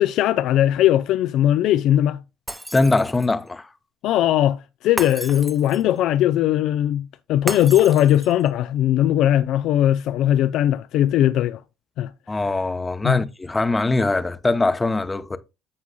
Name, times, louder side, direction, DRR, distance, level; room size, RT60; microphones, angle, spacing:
voice 1, 0.0-2.2 4.0-11.6 12.0-12.1 13.0-13.2, left 12 dB, 70° left, 0.4 m, -19 dB
Shatter, 2.5-3.4 5.0-6.0 7.5-8.5, right 1 dB, 5° right, 0.9 m, -33 dB
voice 2, 2.7-3.7 12.3-15.4, left 2 dB, 20° left, 0.8 m, -22 dB
14.0 x 4.7 x 2.2 m
hypercardioid pair, 65°, 0 cm